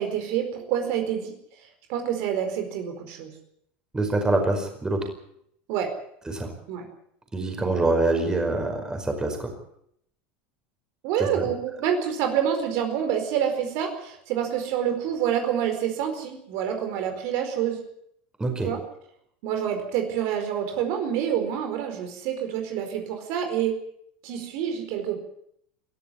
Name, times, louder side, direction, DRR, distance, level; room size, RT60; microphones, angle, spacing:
voice 1, 0.0-1.3 1.9-3.3 5.7-5.9 6.7-6.9 11.0-17.8 18.6-18.8 19.4-23.8 24.2-25.2, right 9 dB, 60° right, 5 dB, 4.7 m, -27 dB
voice 2, 3.9-5.1 6.3-6.5 7.3-9.5 11.2-11.5 18.4-18.7, right 2 dB, 15° right, 4 dB, 5.0 m, -25 dB
21.5 x 13.5 x 9.9 m, 0.72 s
supercardioid pair, 120°, 5 cm